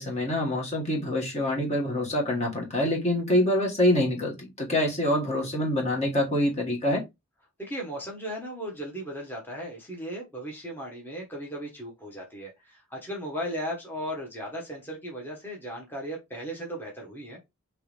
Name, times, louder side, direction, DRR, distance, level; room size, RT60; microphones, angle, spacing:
voice 1, 0.0-7.0, left 1 dB, 30° left, 1.3 m, -25 dB
voice 2, 7.6-17.4, equal, 10° left, 1.2 m, -36 dB
4.5 x 3.1 x 3.3 m
head